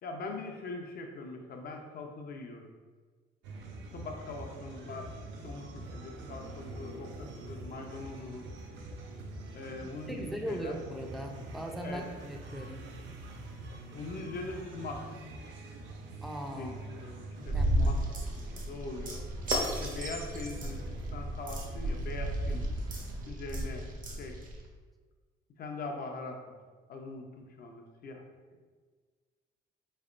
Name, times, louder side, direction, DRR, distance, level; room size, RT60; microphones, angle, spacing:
voice 1, 0.0-2.7 3.9-5.1 5.4-8.5 9.5-10.7 11.8-12.0 13.9-15.1 16.5-18.0 18.7-19.2 19.8-22.7 23.2-23.9 24.2-24.4 25.6-26.6 26.9-28.2, left 3 dB, 55° left, 3 dB, 0.6 m, -42 dB
sound 1, 3.4-23.3, right 2 dB, 85° right, 0.5 m, -46 dB
voice 2, 9.8-12.8 16.2-16.7 17.4-18.0, right 1 dB, ahead, 1 dB, 0.4 m, -40 dB
sound 2, 17.4-24.6, right 1 dB, 45° right, 0.7 m, -33 dB
3.5 x 3.2 x 2.5 m, 1.4 s
cardioid pair, 85°, 19 cm